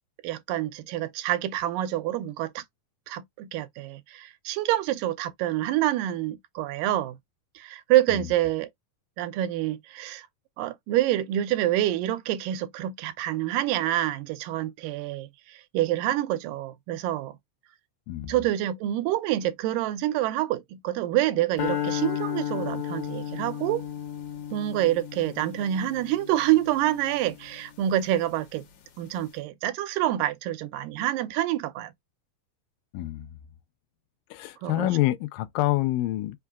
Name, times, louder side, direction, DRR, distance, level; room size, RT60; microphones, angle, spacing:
voice 1, 0.2-2.6 3.1-7.2 7.6-8.7 9.2-10.3 10.6-17.4 18.3-23.9 24.5-28.7 29.0-31.9 34.6-34.9, right 13 dB, 90° right, 2.3 m, -27 dB
sound 1, 21.6-27.9, left 10 dB, 65° left, 2.3 m, -34 dB
voice 2, 32.9-33.3 34.3-36.4, left 16 dB, 90° left, 2.3 m, -27 dB
5.5 x 2.3 x 3.4 m
omnidirectional pair, 3.8 m